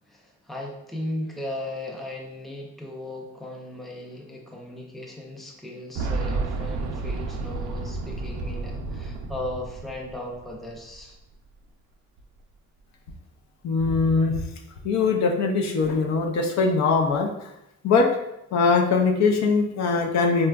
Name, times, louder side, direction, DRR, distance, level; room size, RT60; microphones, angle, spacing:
voice 1, 0.1-11.2, left 1 dB, ahead, -1 dB, 0.5 m, -36 dB
Boom, 6.0-10.7 11.0-11.1 12.2-12.3, right 3 dB, 75° right, 0.5 m, -31 dB
voice 2, 13.6-14.4 14.8-17.3 17.8-18.2 18.5-20.5, left 4 dB, 65° left, 3 dB, 0.5 m, -21 dB
3.9 x 2.3 x 2.2 m, 0.84 s
cardioid pair, 90°, 30 cm